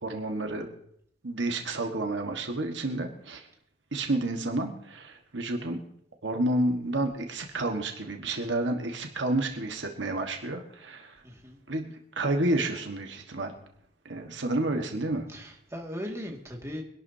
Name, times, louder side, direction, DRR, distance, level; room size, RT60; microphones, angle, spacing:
voice 1, 0.0-0.7 1.2-3.5 3.9-5.8 6.2-11.2 11.7-13.5 14.0-15.3, right 2 dB, 70° right, 4 dB, 1.5 m, -30 dB
voice 2, 11.2-11.6 15.3-16.8, equal, 15° right, 0 dB, 2.0 m, -38 dB
24.5 x 12.0 x 2.8 m, 0.69 s
head